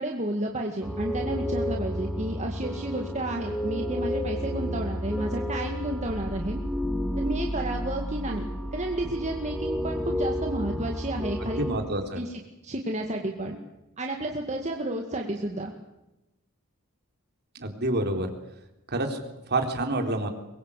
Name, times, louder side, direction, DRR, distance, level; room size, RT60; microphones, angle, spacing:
voice 1, 0.0-6.6 7.2-8.5 8.7-11.6 12.2-13.6 14.0-15.7, right 1 dB, 30° right, 2 dB, 2.2 m, -31 dB
sound 1, 0.8-11.8, equal, ahead, 2.7 m, -31 dB
voice 2, 11.4-12.2 17.6-18.3 18.9-20.3, right 2 dB, 50° right, 4 dB, 3.8 m, -28 dB
24.0 x 22.0 x 8.5 m, 0.93 s
head